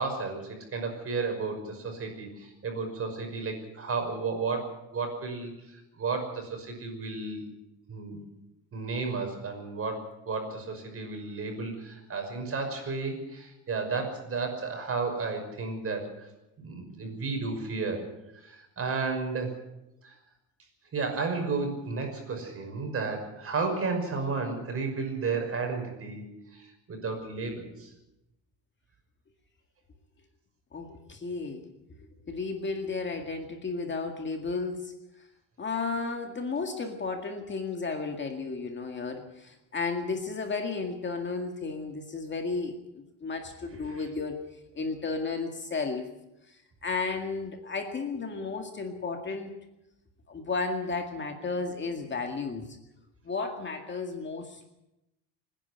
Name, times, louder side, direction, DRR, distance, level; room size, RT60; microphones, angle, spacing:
voice 1, 0.0-7.4 7.9-8.2 8.7-16.3 16.6-18.1 18.3-19.6 20.0-20.2 20.9-27.9 43.9-44.0, right 4 dB, 35° right, 4 dB, 5.8 m, -33 dB
voice 2, 30.7-31.7 32.3-34.9 35.6-46.1 46.5-49.6 50.3-52.8 53.2-54.6, left 4 dB, 25° left, 4 dB, 2.1 m, -33 dB
25.5 x 10.5 x 9.6 m, 0.92 s
cardioid pair, 130°, 41 cm